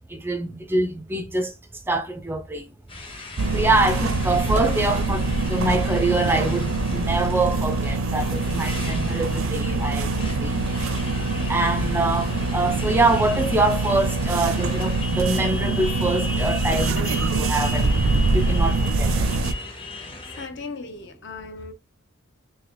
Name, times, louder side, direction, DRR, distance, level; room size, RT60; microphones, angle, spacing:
voice 1, 0.1-1.5 1.9-2.7 3.5-10.6 11.5-17.9 18.3-19.3, right 2 dB, 10° right, 0.3 m, -24 dB
Motorcycle, 2.9-20.5, left 2 dB, 25° left, 0.8 m, -37 dB
sound 1, 3.4-19.5, right 2 dB, 80° right, 0.5 m, -24 dB
voice 2, 20.4-21.7, left 3 dB, 55° left, 0.7 m, -37 dB
3.8 x 3.2 x 3.0 m
head